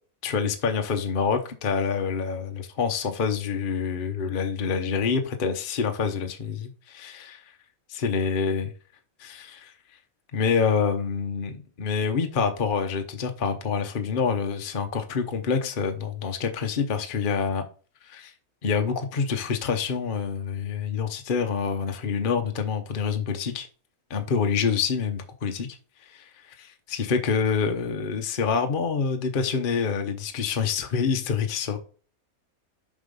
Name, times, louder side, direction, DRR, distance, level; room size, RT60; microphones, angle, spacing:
voice 1, 0.2-7.4 7.9-8.7 9.2-9.7 10.3-17.6 18.0-18.3 18.6-23.7 24.1-25.7 26.1-26.2 26.6-31.8, left 6 dB, 40° left, 1.0 m, -27 dB
7.3 x 4.1 x 5.4 m
omnidirectional pair, 1.5 m